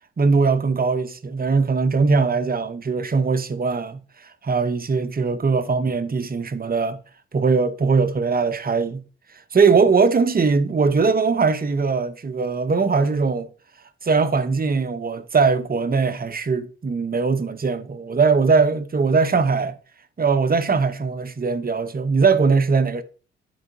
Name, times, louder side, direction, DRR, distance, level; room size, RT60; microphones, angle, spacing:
voice 1, 0.2-7.0 7.3-9.0 9.5-13.5 14.0-19.8 20.2-23.0, right 4 dB, 30° right, 0.9 m, -20 dB
11.0 x 3.9 x 2.7 m
supercardioid pair, 45°, 29 cm